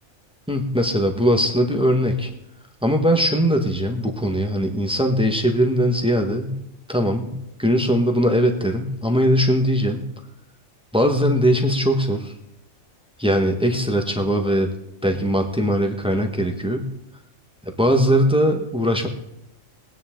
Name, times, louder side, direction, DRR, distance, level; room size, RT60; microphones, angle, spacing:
voice 1, 0.5-2.3 2.8-6.6 6.9-10.1 10.9-12.3 13.2-14.7 15.0-16.9 17.8-19.1, equal, 5° right, 3 dB, 1.4 m, -20 dB
20.0 x 9.9 x 3.8 m, 0.81 s
omnidirectional pair, 1.4 m